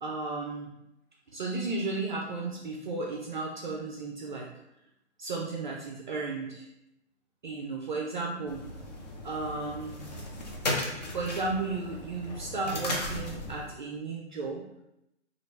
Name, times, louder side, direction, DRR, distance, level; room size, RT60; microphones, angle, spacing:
voice 1, 0.0-0.7 1.3-4.5 5.2-6.7 7.4-8.7 9.2-10.1 11.1-14.6, right 3 dB, 45° right, -1 dB, 0.4 m, -34 dB
sound 1, 8.5-13.7, left 1 dB, 35° left, 0.6 m, -36 dB
3.0 x 2.4 x 3.2 m, 0.86 s
hypercardioid pair, 155°, 35 cm